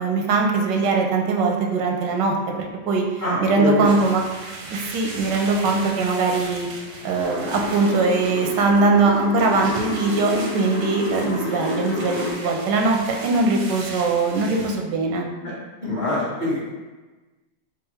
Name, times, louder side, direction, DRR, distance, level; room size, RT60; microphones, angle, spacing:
voice 1, 0.0-3.1 3.4-4.3 4.7-6.7 7.0-15.3, right 3 dB, 90° right, 2 dB, 1.2 m, -21 dB
voice 2, 3.2-3.9 15.8-16.7, left 1 dB, 30° left, -8 dB, 1.2 m, -24 dB
sound 1, 3.8-14.7, right 2 dB, 60° right, 0.8 m, -38 dB
sound 2, 7.2-12.3, left 3 dB, 70° left, 1.4 m, -30 dB
3.7 x 2.4 x 4.3 m, 1.2 s
omnidirectional pair, 1.8 m